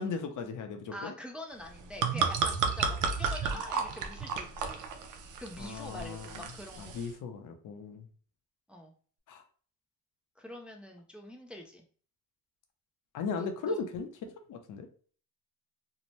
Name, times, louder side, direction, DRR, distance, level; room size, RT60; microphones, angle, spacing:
voice 1, 0.0-1.1 5.6-6.4 6.8-8.1 9.3-9.4 13.1-14.1 14.5-14.9, left 5 dB, 65° left, 6 dB, 0.6 m, -37 dB
voice 2, 0.9-4.8 5.4-6.9 8.7-8.9 10.4-11.8 13.4-13.8, left 1 dB, 5° right, 2 dB, 0.4 m, -45 dB
sound 1, 1.6-7.1, right 5 dB, 65° right, 0.6 m, -33 dB
2.7 x 2.1 x 3.0 m, 0.43 s
cardioid pair, 100°, 34 cm